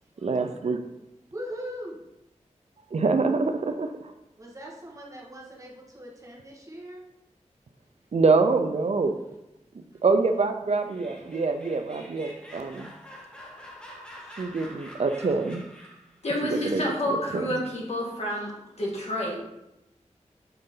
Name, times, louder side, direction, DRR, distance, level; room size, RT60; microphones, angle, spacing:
voice 1, 0.2-0.8 2.9-3.9 8.1-9.1 9.7-12.9 14.4-15.6 16.4-16.8 17.1-17.5, right 4 dB, 60° right, 7 dB, 0.5 m, -25 dB
voice 2, 1.3-2.0 4.4-7.1 18.3-18.5, equal, 25° right, -3 dB, 1.5 m, -40 dB
Laughter, 10.7-16.1, equal, 5° left, 1.2 m, -46 dB
voice 3, 16.2-18.5 18.8-19.4, left 1 dB, 60° left, -3 dB, 1.9 m, -29 dB
6.9 x 3.9 x 3.8 m, 0.89 s
wide cardioid pair, 100°, 13 cm